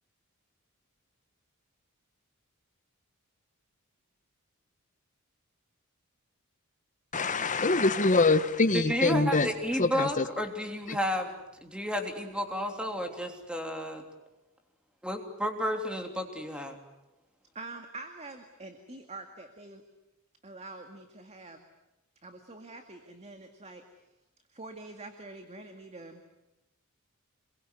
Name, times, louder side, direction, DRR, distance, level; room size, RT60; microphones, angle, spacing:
voice 1, 7.1-9.5 9.8-10.2, left 3 dB, 35° left, 10 dB, 1.4 m, -24 dB
voice 2, 8.7-14.0 15.0-16.8, equal, 5° right, 4 dB, 3.3 m, -32 dB
voice 3, 17.5-19.8 20.4-21.7 22.2-23.9 24.5-26.2, right 3 dB, 30° right, 6 dB, 2.1 m, -45 dB
27.0 x 22.5 x 9.7 m, 0.94 s
head